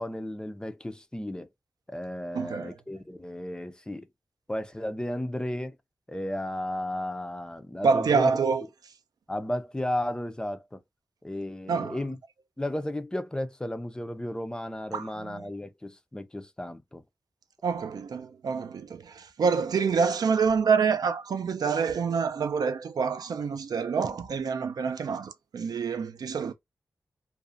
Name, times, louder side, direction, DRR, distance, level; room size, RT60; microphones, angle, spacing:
voice 1, 0.0-1.5 1.9-4.1 4.5-5.8 6.1-8.3 9.3-10.8 11.2-12.2 12.6-17.0, left 1 dB, 10° left, 0.4 m, -34 dB
voice 2, 2.3-2.7 7.8-8.6 11.7-12.0 14.9-15.5 17.6-26.5, right 5 dB, 80° right, 0.4 m, -27 dB
2.4 x 2.0 x 2.5 m
wide cardioid pair, 100°, 7 cm